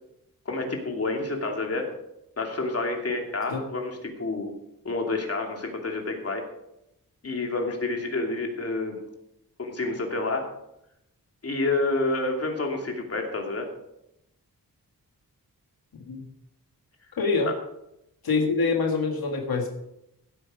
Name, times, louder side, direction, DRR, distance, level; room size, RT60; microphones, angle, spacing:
voice 1, 0.4-1.9 2.4-4.5 4.8-6.4 7.2-9.0 9.6-10.5 11.4-13.7, left 2 dB, 40° left, 2 dB, 2.7 m, -29 dB
voice 2, 17.2-17.5 18.2-19.7, left 4 dB, 85° left, 2 dB, 1.8 m, -25 dB
16.0 x 8.6 x 5.1 m, 0.83 s
wide cardioid pair, 110°, 36 cm